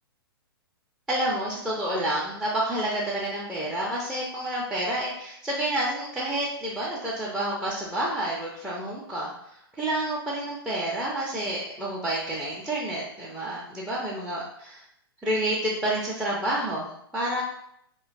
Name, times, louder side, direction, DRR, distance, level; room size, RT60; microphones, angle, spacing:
voice 1, 1.1-14.8 15.2-17.4, right 1 dB, 5° right, -7 dB, 0.4 m, -29 dB
2.7 x 2.2 x 2.4 m, 0.73 s
figure-of-eight pair, 115°, 13 cm